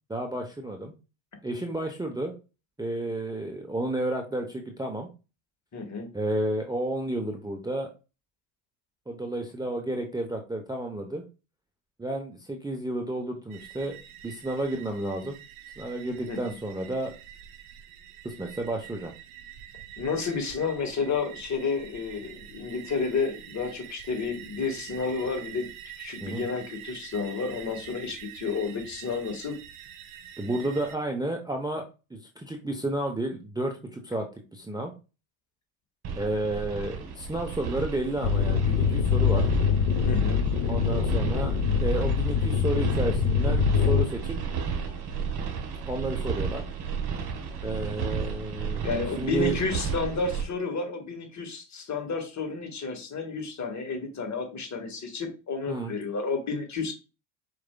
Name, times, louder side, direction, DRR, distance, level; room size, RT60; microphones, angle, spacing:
voice 1, 0.1-0.9 1.4-2.3 2.8-5.1 6.1-7.9 9.1-11.2 12.0-13.9 14.2-15.4 15.8-17.1 18.2-19.1 26.2-26.4 30.4-31.8 32.4-34.2 34.5-34.9 36.2-39.5 40.7-44.4 45.9-46.6 47.6-48.9 49.2-49.6 55.7-55.9, right 1 dB, 10° right, 2 dB, 0.7 m, -31 dB
voice 2, 5.7-6.1 16.3-16.5 20.0-25.7 26.0-29.6 40.0-40.4 48.8-56.9, left 4 dB, 35° left, 3 dB, 1.6 m, -31 dB
sound 1, 13.5-31.0, right 11 dB, 75° right, 0.9 m, -46 dB
sound 2, 36.0-50.4, right 6 dB, 50° right, 1.7 m, -33 dB
sound 3, 38.2-44.0, left 7 dB, 75° left, 0.9 m, -24 dB
5.0 x 4.6 x 2.2 m, 0.31 s
supercardioid pair, 90°, 49 cm